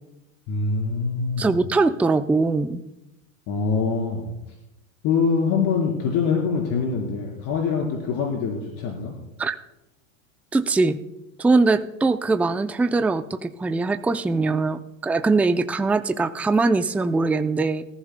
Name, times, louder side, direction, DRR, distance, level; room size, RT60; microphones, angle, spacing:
voice 1, 0.5-1.5 3.5-4.3 5.0-9.1, left 5 dB, 50° left, -2 dB, 3.9 m, -24 dB
voice 2, 1.4-2.8 9.4-9.6 10.5-11.0 11.4-17.8, right 3 dB, 5° right, 9 dB, 0.4 m, -22 dB
26.0 x 14.5 x 2.2 m, 0.92 s
hypercardioid pair, 100°, 41 cm